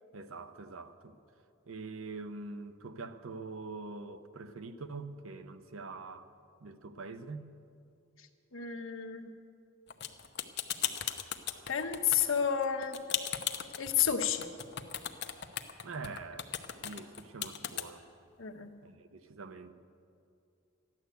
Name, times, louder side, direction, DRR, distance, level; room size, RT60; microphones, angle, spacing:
voice 1, 0.1-1.2 1.7-6.3 6.6-7.5 15.8-16.5 16.8-18.0 18.8-19.7, right 3 dB, 80° right, 0.8 m, -44 dB
voice 2, 8.5-9.3 11.7-13.0 13.8-14.5 18.4-18.7, left 8 dB, 70° left, 1.1 m, -31 dB
sound 1, 9.9-17.8, left 10 dB, 55° left, 0.8 m, -36 dB
14.0 x 10.5 x 8.0 m
head